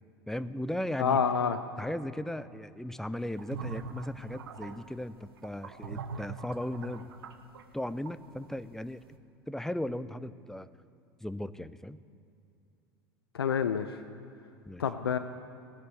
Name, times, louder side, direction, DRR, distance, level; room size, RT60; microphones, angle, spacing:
voice 1, 0.3-1.2 1.8-7.1 7.7-9.0 9.5-10.7 11.2-12.0 14.7-14.8, left 1 dB, 5° left, 15 dB, 0.6 m, -37 dB
voice 2, 1.0-1.6 13.3-13.9 14.8-15.2, left 7 dB, 80° left, 10 dB, 0.6 m, -27 dB
sound 1, 3.3-8.5, right 5 dB, 75° right, 1.0 m, -42 dB
16.0 x 10.5 x 8.0 m, 2.6 s
figure-of-eight pair, 75°, 13 cm